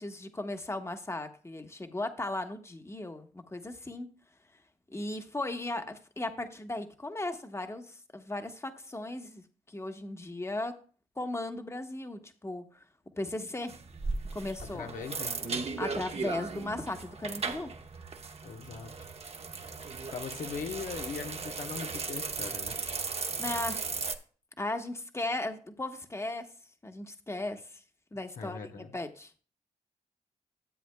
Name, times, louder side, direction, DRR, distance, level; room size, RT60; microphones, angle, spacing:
voice 1, 0.0-4.1 4.9-10.7 11.2-12.6 13.2-13.7 14.3-14.9 15.8-17.7 23.4-23.9 24.6-26.4 26.8-27.8 28.1-29.3, left 2 dB, 20° left, 1.3 m, -36 dB
sound 1, 13.7-24.2, right 4 dB, 50° right, 1.2 m, -37 dB
voice 2, 14.6-15.6 18.4-19.1 20.1-22.8 28.4-28.9, left 6 dB, 80° left, 1.2 m, -40 dB
13.5 x 7.7 x 2.3 m
supercardioid pair, 50°, 14 cm